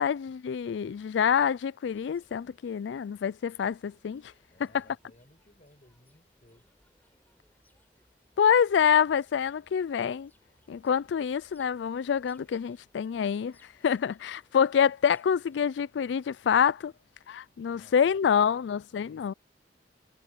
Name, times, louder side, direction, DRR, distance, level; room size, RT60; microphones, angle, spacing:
voice 1, 0.0-4.3 8.4-10.3 10.7-13.5 13.8-16.9 17.3-19.3, left 7 dB, 80° left, 0.3 m, -26 dB
sound 1, 1.9-15.6, left 1 dB, 10° left, 4.9 m, -67 dB
voice 2, 4.5-6.7 17.6-19.3, left 1 dB, 40° left, 7.3 m, -60 dB
head